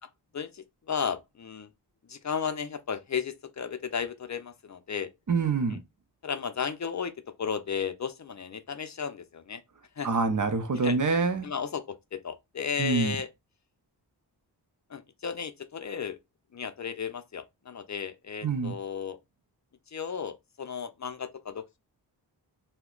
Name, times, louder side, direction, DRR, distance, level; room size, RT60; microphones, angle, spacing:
voice 1, 0.3-1.7 2.1-5.1 6.2-7.1 7.4-9.6 10.0-10.1 10.8-11.0 11.4-13.3 14.9-16.2 16.5-19.2 19.9-21.8, left 6 dB, 40° left, 0.5 m, -34 dB
voice 2, 5.3-5.8 10.0-11.5 12.8-13.2 18.4-18.7, right 4 dB, 45° right, 0.8 m, -26 dB
2.7 x 2.2 x 3.8 m
cardioid pair, 50°, 43 cm